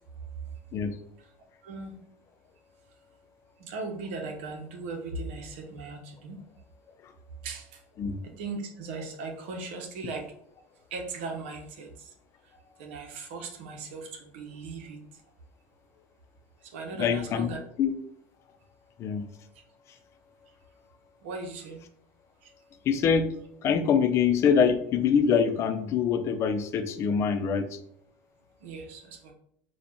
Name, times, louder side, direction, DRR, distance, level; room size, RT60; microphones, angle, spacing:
voice 1, 1.6-2.0 3.6-6.4 7.4-7.8 8.2-10.3 10.9-12.1 12.8-15.0 16.6-17.6 21.2-21.8 22.4-22.5 28.6-29.3, right 3 dB, 80° right, 3 dB, 0.9 m, -38 dB
voice 2, 17.0-17.5 17.8-17.9 19.0-19.3 22.9-23.3 23.6-27.8, left 6 dB, 45° left, 8 dB, 0.6 m, -24 dB
4.2 x 2.4 x 4.4 m, 0.68 s
supercardioid pair, 95°, 6 cm